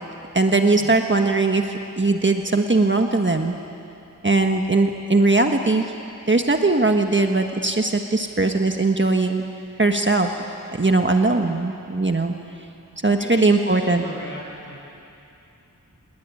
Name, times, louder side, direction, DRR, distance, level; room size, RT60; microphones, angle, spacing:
voice 1, 0.3-3.5 4.2-5.9 6.3-9.4 9.8-10.3 10.7-12.3 13.0-14.0, right 3 dB, 35° right, 4 dB, 1.4 m, -20 dB
voice 2, 13.2-14.8, left 1 dB, 35° left, -2 dB, 7.9 m, -36 dB
26.0 x 20.0 x 9.8 m, 2.7 s
wide cardioid pair, 65°, 33 cm